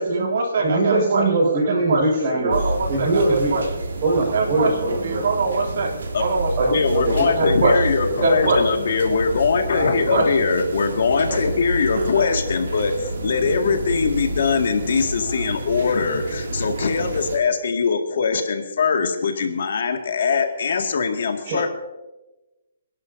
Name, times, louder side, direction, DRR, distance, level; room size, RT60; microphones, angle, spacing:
voice 1, 0.1-1.2 1.7-2.0 2.3-3.6 4.3-5.9 6.2-6.7 7.2-7.7 8.2-8.6 10.1-10.3 11.2-11.4, right 3 dB, 65° right, 1 dB, 3.0 m, -22 dB
voice 2, 0.6-2.6 2.9-3.5 4.0-5.3 6.6-7.7 8.0-8.1 9.7-10.4 21.4-21.6, right 2 dB, 35° right, -4 dB, 5.7 m, -23 dB
sound 1, 2.5-17.4, right 2 dB, 85° right, 3.2 m, -29 dB
voice 3, 6.7-21.7, left 5 dB, 65° left, 4 dB, 2.0 m, -22 dB
27.0 x 11.5 x 2.7 m, 1.1 s
hypercardioid pair, 165°, 0 cm